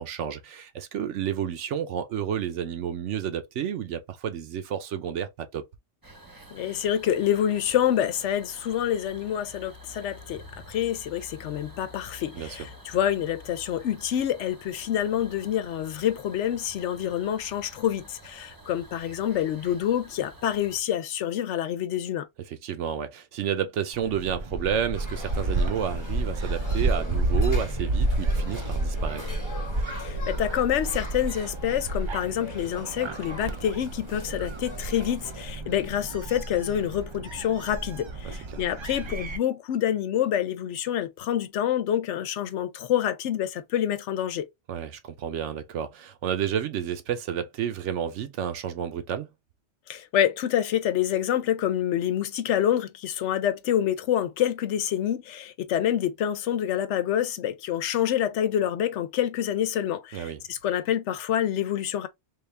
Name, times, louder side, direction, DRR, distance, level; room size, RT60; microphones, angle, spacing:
voice 1, 0.0-5.6 12.3-12.7 22.5-29.3 38.5-38.6 44.7-49.3 60.1-60.4, right 9 dB, 85° right, 1.0 m, -31 dB
sound 1, 6.0-20.8, equal, 20° right, 0.7 m, -48 dB
voice 2, 6.5-22.3 30.0-44.5 49.9-62.1, left 10 dB, 80° left, 0.9 m, -27 dB
Gull seagull, 23.9-39.4, right 2 dB, 50° right, 0.3 m, -30 dB
sound 2, 24.9-35.4, left 2 dB, 20° left, 0.9 m, -43 dB
3.5 x 2.4 x 3.2 m
omnidirectional pair, 1.2 m